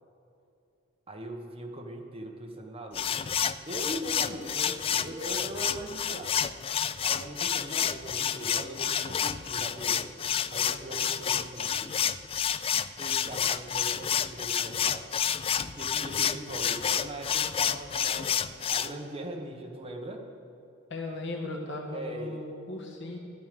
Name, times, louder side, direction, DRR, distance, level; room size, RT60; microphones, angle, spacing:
voice 1, 1.1-3.4 3.7-6.4 7.0-10.1 10.5-11.9 13.0-15.2 15.6-20.3 21.9-22.4, right 1 dB, 30° right, 2 dB, 1.3 m, -40 dB
sound 1, 2.9-18.9, left 8 dB, 30° left, 0.3 m, -29 dB
voice 2, 20.9-23.2, left 2 dB, 65° left, 0 dB, 2.0 m, -37 dB
14.5 x 12.0 x 5.2 m, 2.7 s
head